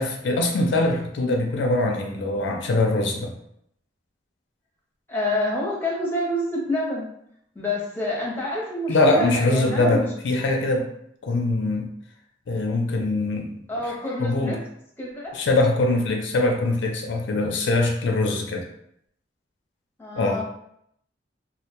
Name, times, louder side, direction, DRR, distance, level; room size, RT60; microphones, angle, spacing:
voice 1, 0.0-3.3 8.9-10.9 11.2-11.9 12.5-13.5 13.8-14.6 15.3-18.6 20.2-20.4, left 2 dB, 75° left, 2 dB, 0.4 m, -23 dB
voice 2, 5.1-7.1 7.6-10.1 13.7-14.6 15.0-15.3 20.0-20.4, left 1 dB, 10° left, -4 dB, 0.6 m, -27 dB
2.1 x 2.1 x 2.8 m, 0.73 s
head